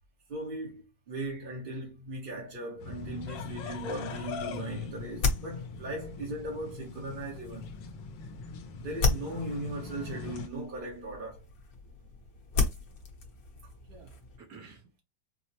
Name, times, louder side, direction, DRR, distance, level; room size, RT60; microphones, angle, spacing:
voice 1, 0.3-7.8 8.8-11.4, right 1 dB, 40° right, 0.9 m, -38 dB
sound 1, 2.8-10.5, left 4 dB, 85° left, 1.4 m, -41 dB
sound 2, 4.1-14.4, left 4 dB, 55° left, 1.3 m, -36 dB
voice 2, 8.3-8.7 12.9-13.1 13.8-15.0, right 4 dB, 55° right, 1.5 m, -54 dB
4.5 x 2.1 x 2.8 m
omnidirectional pair, 2.0 m